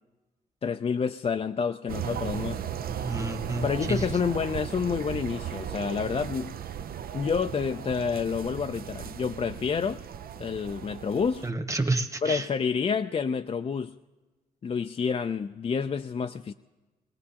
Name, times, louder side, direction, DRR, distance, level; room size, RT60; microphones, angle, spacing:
voice 1, 0.6-2.6 3.6-6.5 7.1-10.0 10.4-11.4 12.2-13.9 14.6-16.5, left 6 dB, 35° left, 7 dB, 0.4 m, -28 dB
sound 1, 1.9-11.5, right 9 dB, 60° right, 0.5 m, -36 dB
voice 2, 3.0-4.1 11.4-12.5, right 2 dB, 20° right, 5 dB, 1.2 m, -29 dB
22.0 x 18.0 x 2.9 m, 1.2 s
cardioid pair, 65°, 17 cm